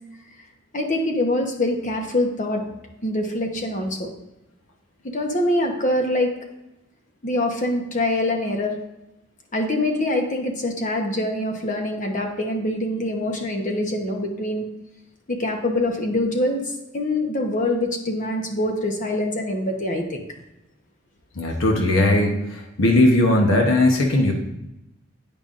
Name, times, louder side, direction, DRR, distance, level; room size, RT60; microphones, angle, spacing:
voice 1, 0.7-2.6 3.0-4.1 5.1-6.3 7.2-8.7 9.5-14.6 15.3-16.6 16.9-20.2, left 1 dB, 40° left, 2 dB, 1.0 m, -24 dB
voice 2, 21.4-24.3, left 1 dB, 75° left, 2 dB, 0.9 m, -18 dB
8.6 x 5.3 x 2.5 m, 0.91 s
head